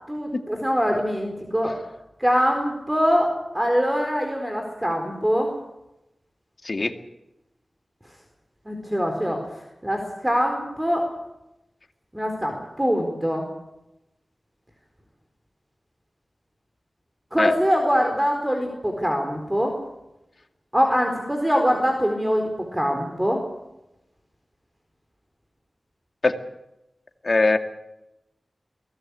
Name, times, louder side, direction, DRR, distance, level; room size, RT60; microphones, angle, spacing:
voice 1, 0.1-1.7 2.2-3.3 3.5-5.5 8.7-9.4 9.8-11.0 12.1-13.4 17.3-19.7 20.7-22.5 22.7-23.4, equal, 10° right, 3 dB, 4.3 m, -23 dB
voice 2, 27.2-27.6, left 3 dB, 55° left, 7 dB, 2.2 m, -20 dB
23.5 x 18.0 x 8.4 m, 0.89 s
wide cardioid pair, 65°, 0 cm